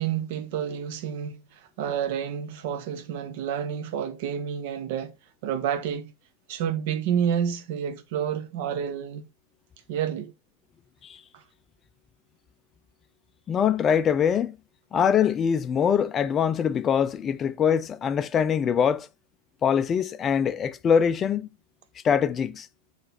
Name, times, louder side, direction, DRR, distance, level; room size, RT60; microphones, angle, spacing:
voice 1, 0.0-5.1 5.4-6.1 6.5-9.2 9.9-10.3 11.3-11.4, right 8 dB, 50° right, 1.0 m, -29 dB
voice 2, 13.5-14.5 14.9-19.1 19.6-21.5 22.0-22.7, left 7 dB, 25° left, 0.5 m, -23 dB
6.7 x 4.3 x 4.1 m
figure-of-eight pair, 90°, 0 cm